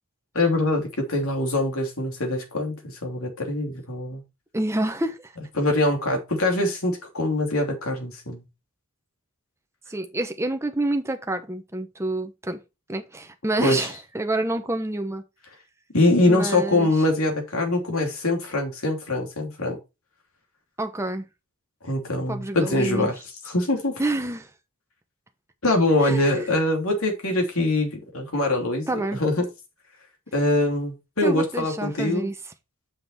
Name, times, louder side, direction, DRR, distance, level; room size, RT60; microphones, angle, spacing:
voice 1, 0.3-4.2 5.6-8.4 13.6-13.8 15.9-19.8 21.8-23.1 23.5-24.0 25.6-29.4 30.3-32.3, left 2 dB, 70° left, 2.9 m, -23 dB
voice 2, 4.5-5.3 9.9-12.6 12.9-15.2 16.2-16.9 20.8-21.2 22.3-23.1 24.0-24.5 26.0-26.5 28.9-29.2 31.2-32.4, right 1 dB, 10° right, 1.0 m, -28 dB
7.4 x 5.9 x 4.1 m
head